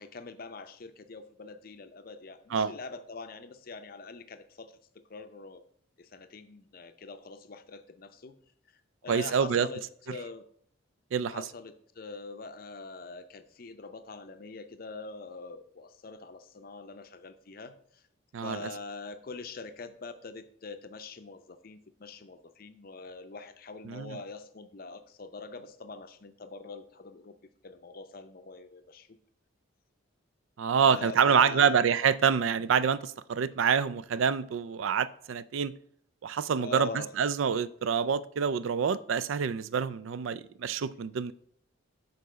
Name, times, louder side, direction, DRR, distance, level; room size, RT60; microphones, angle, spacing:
voice 1, 0.0-4.8 5.1-5.6 6.0-8.4 9.0-10.4 11.2-18.0 18.4-27.4 27.6-29.1 30.8-31.8 36.6-37.1, left 3 dB, 45° left, 0.5 m, -44 dB
voice 2, 9.1-9.7 11.1-11.5 18.3-18.6 23.9-24.2 30.6-35.7 36.2-36.9 37.2-41.3, right 7 dB, 75° right, 0.4 m, -27 dB
6.8 x 4.0 x 6.2 m
head